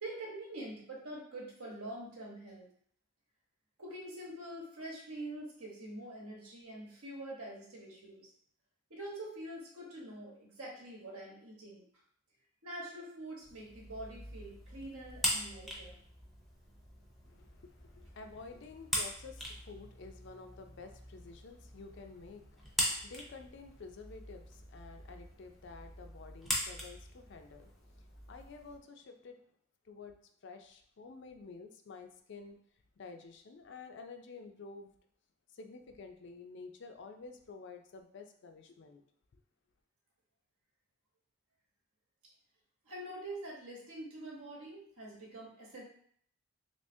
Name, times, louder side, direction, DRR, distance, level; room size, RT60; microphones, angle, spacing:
voice 1, 0.0-2.6 3.8-8.3 8.9-11.8 12.6-15.9 42.8-45.8, right 1 dB, 80° right, -2 dB, 1.1 m, -45 dB
sound 1, 13.4-28.8, equal, ahead, 0.5 m, -41 dB
voice 2, 17.2-29.4 29.8-30.2 30.4-32.6 33.0-34.9 35.5-39.0, left 4 dB, 55° left, 6 dB, 0.4 m, -51 dB
3.4 x 3.2 x 2.6 m, 0.63 s
head